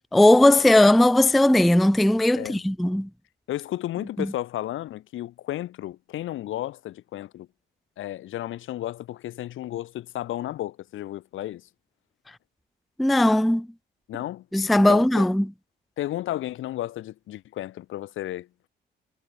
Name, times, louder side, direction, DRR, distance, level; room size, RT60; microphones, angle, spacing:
voice 1, 0.0-3.1 4.2-4.3 13.0-13.7 14.5-15.5, left 1 dB, ahead, 0.3 m, -18 dB
voice 2, 3.5-7.5 8.0-11.6 14.1-14.5 14.8-15.3 16.0-18.7, left 14 dB, 80° left, 3.8 m, -33 dB
cardioid pair, 90°, 20 cm